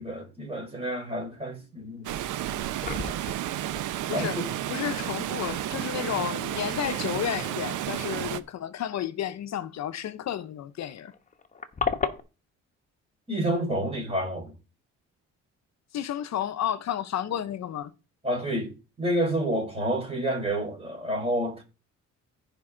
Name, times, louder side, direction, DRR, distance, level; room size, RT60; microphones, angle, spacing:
voice 1, 0.0-2.2 4.1-4.5 13.3-14.5 18.2-18.7 19.0-21.6, right 1 dB, 20° right, 5.2 m, -29 dB
Water, 2.0-8.4, right 12 dB, 85° right, 0.8 m, -32 dB
sound 1, 2.8-3.5 3.8-3.9 6.3-6.5 7.3-7.4 7.7-7.8 10.2-10.3 10.5-10.6 10.9-12.2, left 6 dB, 25° left, 1.2 m, -31 dB
voice 2, 4.1-4.4 4.7-11.1 15.9-17.9, left 10 dB, 60° left, 0.8 m, -32 dB
15.0 x 5.3 x 3.8 m
cardioid pair, 90°, 30 cm